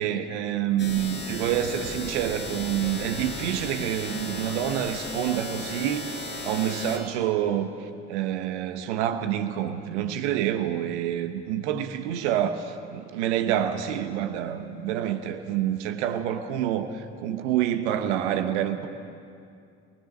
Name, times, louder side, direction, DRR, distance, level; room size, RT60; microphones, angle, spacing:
voice 1, 0.0-18.9, right 10 dB, 80° right, 8 dB, 1.3 m, -27 dB
sound 1, 0.8-7.0, left 2 dB, 35° left, 5.6 m, -35 dB
25.0 x 19.0 x 7.4 m, 2.4 s
hypercardioid pair, 55°, 34 cm